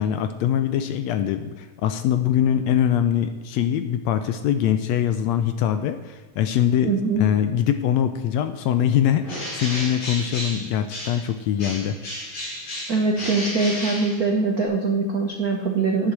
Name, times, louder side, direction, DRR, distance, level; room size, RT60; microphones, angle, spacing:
voice 1, 0.0-6.9 7.2-12.0, left 10 dB, 75° left, 9 dB, 1.6 m, -23 dB
voice 2, 6.8-7.2 12.9-16.1, right 4 dB, 85° right, 2 dB, 0.8 m, -22 dB
Bird, 9.2-11.3 11.6-14.7, left 1 dB, 45° left, 5.0 m, -33 dB
10.0 x 8.1 x 7.5 m, 1.3 s
omnidirectional pair, 3.5 m